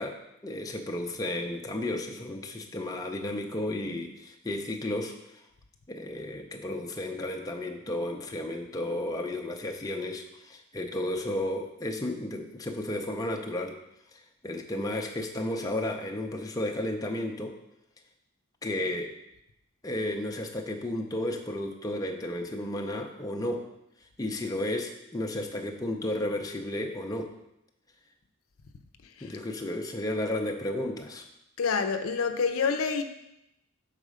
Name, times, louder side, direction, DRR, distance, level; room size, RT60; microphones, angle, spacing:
voice 1, 0.0-5.1 5.9-13.8 14.4-17.5 18.6-19.1 19.8-23.6 24.2-27.3 29.2-31.2, left 1 dB, 15° left, 2 dB, 0.5 m, -33 dB
voice 2, 31.6-33.0, left 5 dB, 70° left, 6 dB, 0.5 m, -27 dB
6.5 x 4.1 x 4.9 m, 0.83 s
head